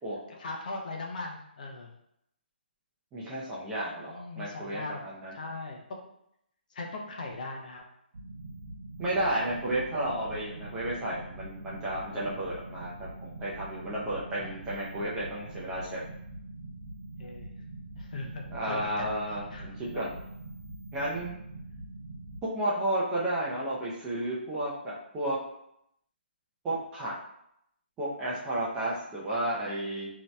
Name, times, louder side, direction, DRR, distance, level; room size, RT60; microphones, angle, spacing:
voice 1, 0.3-1.9 4.0-5.8 6.7-7.8 14.4-14.9 17.2-17.7 18.0-20.0, left 2 dB, 45° left, 0 dB, 0.5 m, -40 dB
voice 2, 3.1-5.3 9.0-16.0 18.5-20.1 20.9-21.3 22.5-25.4 26.6-27.1 28.0-30.1, right 1 dB, 10° right, -6 dB, 0.5 m, -32 dB
sound 1, 8.1-22.4, right 2 dB, 85° right, 0.5 m, -44 dB
2.8 x 2.2 x 3.1 m, 0.75 s
hypercardioid pair, 160°, 6 cm